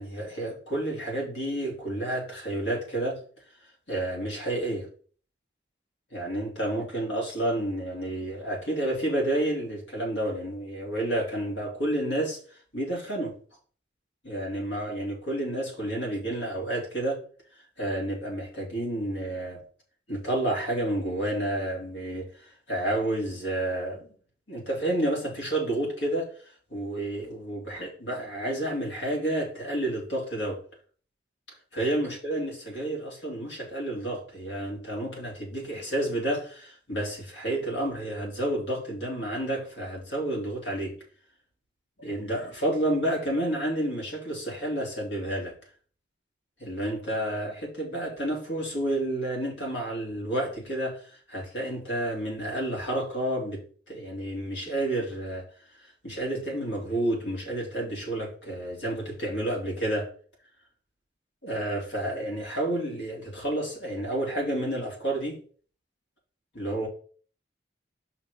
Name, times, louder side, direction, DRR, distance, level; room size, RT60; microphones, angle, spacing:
voice 1, 0.0-3.2 3.9-4.9 6.1-12.4 12.7-13.3 14.2-17.2 17.8-19.6 20.1-24.1 24.5-26.3 26.7-30.6 31.7-41.0 42.0-45.5 46.6-53.6 53.9-55.4 56.0-60.1 61.4-65.4 66.5-66.9, right 1 dB, 85° left, 3.0 m, -30 dB
5.8 x 4.2 x 5.3 m
head